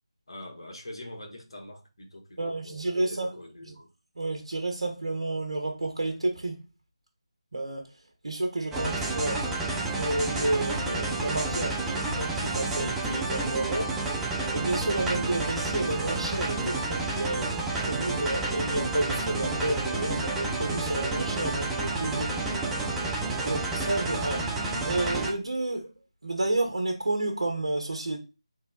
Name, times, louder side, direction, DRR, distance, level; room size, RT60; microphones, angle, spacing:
voice 1, 0.3-3.9, left 1 dB, 60° left, 1.4 m, -44 dB
voice 2, 2.4-3.7 4.2-6.6 7.5-7.9 8.2-9.5 9.9-14.0 14.5-22.4 23.4-25.9 26.2-28.2, right 2 dB, 75° right, 1.2 m, -31 dB
sound 1, 8.7-25.3, right 2 dB, 5° right, 0.5 m, -30 dB
3.6 x 3.5 x 3.8 m
figure-of-eight pair, 160°, 3 cm